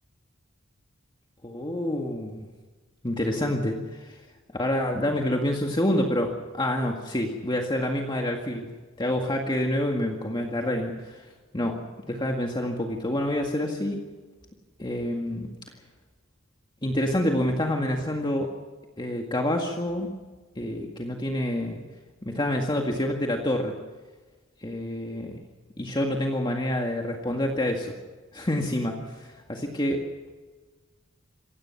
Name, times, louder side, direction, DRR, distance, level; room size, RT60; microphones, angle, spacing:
voice 1, 1.4-2.5 3.0-4.2 4.5-8.7 9.0-11.3 11.5-11.8 12.1-14.0 14.8-15.5 16.8-18.5 19.0-20.1 20.6-21.8 22.2-23.7 24.6-25.4 25.8-27.9 28.3-30.1, left 1 dB, 20° left, 1 dB, 1.9 m, -27 dB
26.5 x 17.5 x 5.9 m, 1.3 s
head